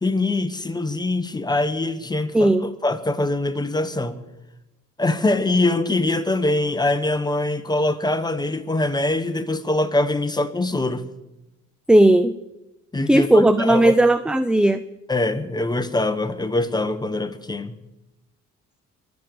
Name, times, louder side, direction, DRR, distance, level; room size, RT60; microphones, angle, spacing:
voice 1, 0.0-2.5 2.8-4.2 5.0-11.1 12.9-13.9 15.1-17.7, left 2 dB, 15° left, 1.3 m, -23 dB
voice 2, 2.3-2.7 11.9-12.3 13.1-14.8, right 1 dB, 5° right, 0.5 m, -16 dB
23.0 x 7.9 x 6.9 m
cardioid pair, 90°, 30 cm